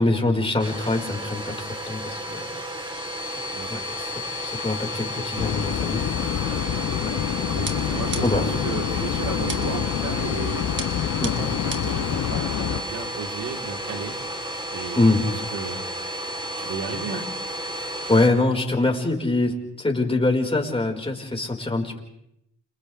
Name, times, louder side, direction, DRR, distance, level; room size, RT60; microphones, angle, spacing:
voice 1, 0.0-2.5 3.3-3.4 3.7-4.1 4.4-6.7 7.0-7.1 8.2-8.4 11.2-11.3 14.9-15.3 17.1-17.2 18.1-22.0, left 2 dB, 20° left, 1 dB, 4.6 m, -24 dB
Domestic sounds home sounds, 0.6-18.3, equal, 15° right, 3.5 m, -32 dB
voice 2, 3.5-3.9 7.5-10.7 11.0-15.9 16.6-17.2, right 5 dB, 85° right, 2 dB, 3.6 m, -34 dB
sound 1, 5.4-12.8, left 10 dB, 60° left, 0.8 m, -27 dB
sound 2, 7.7-8.6 9.5-9.9 10.8-12.0, right 3 dB, 40° right, 3.0 m, -35 dB
30.0 x 27.5 x 3.4 m, 0.78 s
cardioid pair, 70°, 30 cm